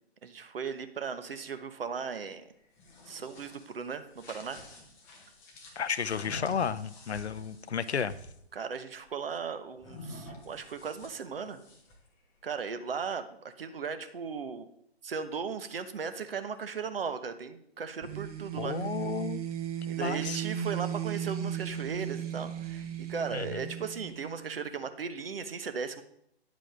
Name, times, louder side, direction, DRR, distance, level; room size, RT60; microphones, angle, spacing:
voice 1, 0.2-2.5 3.1-4.6 8.5-11.6 12.4-14.7 15.0-18.9 19.9-26.0, right 6 dB, 60° right, 10 dB, 1.0 m, -37 dB
sound 1, 2.6-8.4 9.8-12.1, left 1 dB, 10° left, 0.6 m, -48 dB
voice 2, 5.8-8.1 18.6-19.4 20.0-20.4 23.3-23.4, left 7 dB, 80° left, 15 dB, 0.6 m, -32 dB
sound 2, 18.0-24.7, right 10 dB, 35° right, 1.0 m, -36 dB
9.4 x 5.1 x 5.0 m, 0.71 s
figure-of-eight pair, 145°, 32 cm